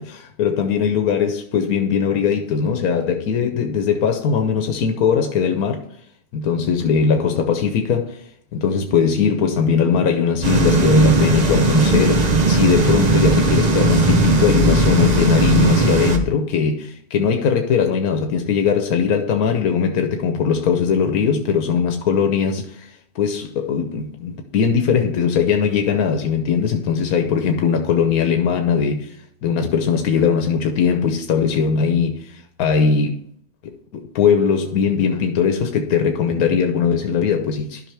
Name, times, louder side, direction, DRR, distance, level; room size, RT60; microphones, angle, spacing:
voice 1, 0.0-5.8 6.3-8.2 8.5-29.2 29.4-33.2 33.6-37.8, left 6 dB, 90° left, 1.3 m, -20 dB
sound 1, 10.4-16.2, right 3 dB, 35° right, 1.0 m, -17 dB
12.5 x 5.6 x 3.4 m
omnidirectional pair, 1.5 m